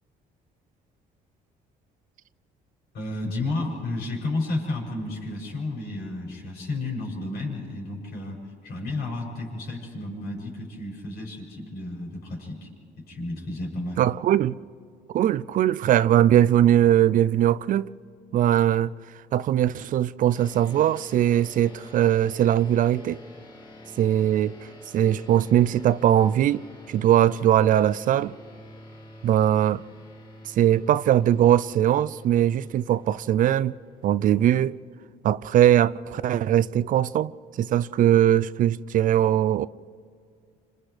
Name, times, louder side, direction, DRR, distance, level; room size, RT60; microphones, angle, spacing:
voice 1, 2.9-12.7 13.0-14.0, left 2 dB, 75° left, 6.9 m, -32 dB
voice 2, 14.0-14.5 15.1-17.9 18.3-18.9 19.3-23.2 24.0-24.6 24.9-26.6 26.9-28.3 29.2-29.8 30.6-33.7 34.0-34.8 35.2-37.3 37.6-39.7, right 11 dB, 50° right, 0.4 m, -20 dB
sound 1, 20.3-35.2, left 1 dB, 25° left, 2.6 m, -47 dB
29.5 x 26.5 x 3.3 m
cardioid pair, 110°, 17 cm